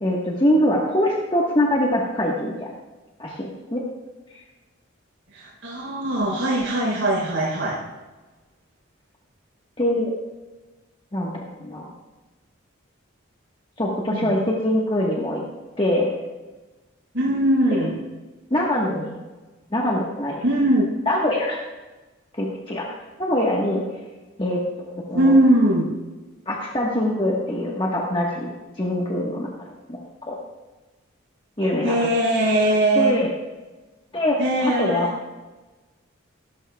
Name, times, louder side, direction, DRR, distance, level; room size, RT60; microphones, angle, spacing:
voice 1, 0.0-2.7 3.2-3.8 9.8-10.1 11.1-11.9 13.8-15.4 15.8-16.2 18.5-19.2 19.7-20.4 21.1-21.6 22.3-22.9 23.2-23.8 24.4-25.4 26.5-28.5 28.8-30.4 31.6-32.0 32.9-33.3 34.1-35.1, left 1 dB, 25° left, -3 dB, 1.4 m, -23 dB
voice 2, 5.3-7.8 14.1-14.3 17.1-18.0 20.4-20.9 25.1-25.9 31.8-33.1 34.4-35.1, right 1 dB, 90° right, -5 dB, 4.0 m, -20 dB
16.5 x 12.5 x 2.3 m, 1.2 s
head